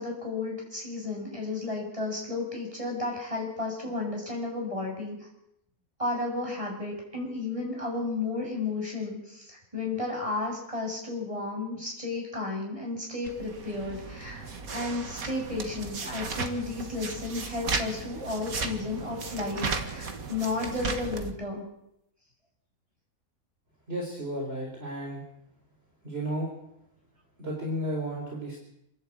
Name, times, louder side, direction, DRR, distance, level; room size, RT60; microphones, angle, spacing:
voice 1, 0.0-5.1 6.0-14.4 14.7-21.6, left 3 dB, 20° right, -1 dB, 7.6 m, -33 dB
sound 1, 13.2-21.3, right 4 dB, 80° right, 2.2 m, -35 dB
voice 2, 23.9-25.2 26.0-26.5 27.4-28.6, right 1 dB, 45° right, -2 dB, 4.5 m, -33 dB
28.0 x 11.5 x 8.8 m, 0.79 s
omnidirectional pair, 1.5 m